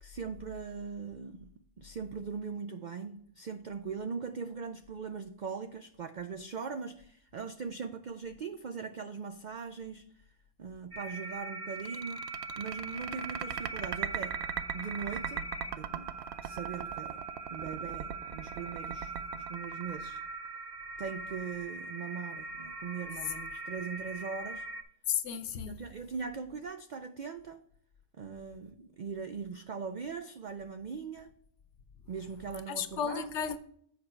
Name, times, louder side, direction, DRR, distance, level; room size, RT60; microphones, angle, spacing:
voice 1, 0.0-10.2 10.6-12.3 12.6-14.4 14.7-15.5 15.8-16.1 16.4-17.2 17.5-20.2 21.0-24.7 25.7-27.6 28.1-31.3 32.1-33.3, right 5 dB, 90° right, 0.4 m, -40 dB
sound 1, 10.9-24.8, right 3 dB, 30° right, 0.9 m, -42 dB
sound 2, 11.8-20.5, right 9 dB, 65° right, 0.7 m, -38 dB
voice 2, 25.1-25.9 32.7-33.6, left 8 dB, 65° left, 0.9 m, -33 dB
8.1 x 5.0 x 4.4 m
omnidirectional pair, 1.4 m